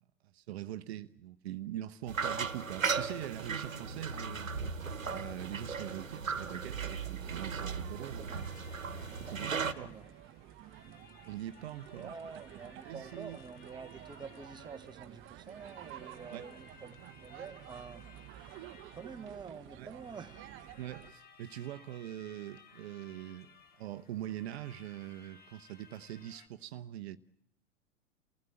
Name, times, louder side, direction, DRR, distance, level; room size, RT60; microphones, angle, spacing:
voice 1, 0.3-4.5 5.1-8.2 9.3-9.9 11.3-12.1 12.9-13.4 16.3-16.5 19.8-19.9 20.8-23.5 23.8-27.2, right 12 dB, 55° right, 0.9 m, -43 dB
sound 1, 2.1-9.7, right 5 dB, 85° right, 1.3 m, -37 dB
sound 2, 3.2-21.1, right 13 dB, 30° right, 1.0 m, -52 dB
voice 2, 8.0-8.4 9.1-9.5 9.8-10.1 11.9-18.1 18.3-18.5 18.9-20.4, right 5 dB, 10° right, 1.2 m, -48 dB
sound 3, 8.3-26.5, left 5 dB, 25° left, 2.0 m, -60 dB
29.0 x 16.0 x 8.9 m
figure-of-eight pair, 95°, 39 cm